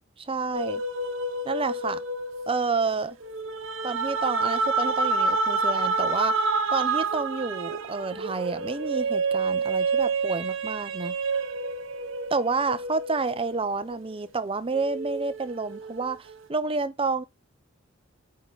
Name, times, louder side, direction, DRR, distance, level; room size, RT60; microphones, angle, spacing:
voice 1, 0.2-0.8 1.4-2.0 2.5-3.2 3.8-6.4 6.7-11.2 12.3-17.2, right 4 dB, 25° right, 0.7 m, -29 dB
sound 1, 0.5-14.3 14.7-16.4, right 3 dB, 65° right, 1.1 m, -29 dB
8.6 x 4.8 x 4.0 m
head